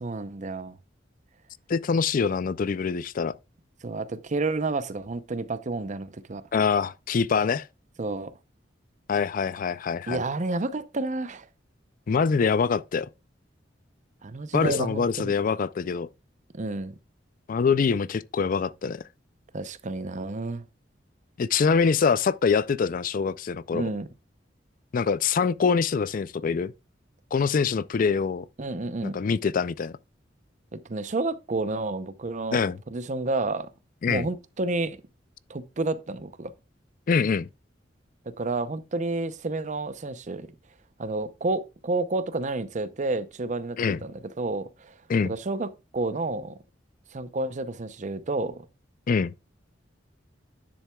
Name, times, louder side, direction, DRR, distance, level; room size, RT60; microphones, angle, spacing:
voice 1, 0.0-0.7 3.8-6.4 8.0-8.3 10.1-11.5 14.2-15.3 16.5-16.9 19.5-20.6 23.7-24.1 28.6-29.2 30.7-32.6 32.9-33.7 34.1-35.0 35.5-36.5 38.3-40.5 41.0-44.9 45.2-46.6 47.1-48.6, right 2 dB, 40° right, 0.7 m, -30 dB
voice 2, 1.7-3.3 6.5-7.7 9.1-10.2 12.1-13.1 14.5-16.1 17.5-19.0 21.4-23.9 24.9-26.7 27.3-28.5 29.0-30.0 32.5-32.8 34.0-34.3 37.1-37.5 43.8-44.0 45.1-45.3 49.1-49.3, left 5 dB, 45° left, 0.4 m, -24 dB
10.0 x 7.4 x 2.3 m
head